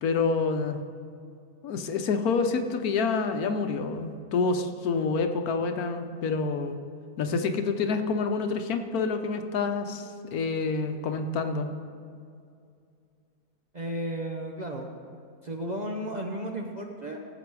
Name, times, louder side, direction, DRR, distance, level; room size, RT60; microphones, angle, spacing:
voice 1, 0.0-0.8 1.6-6.8 7.2-10.0 10.3-11.7, left 4 dB, 70° left, 7 dB, 1.3 m, -27 dB
voice 2, 13.7-14.9 15.4-17.2, right 1 dB, 35° right, 1 dB, 0.7 m, -33 dB
17.5 x 7.7 x 4.7 m, 2.4 s
omnidirectional pair, 1.7 m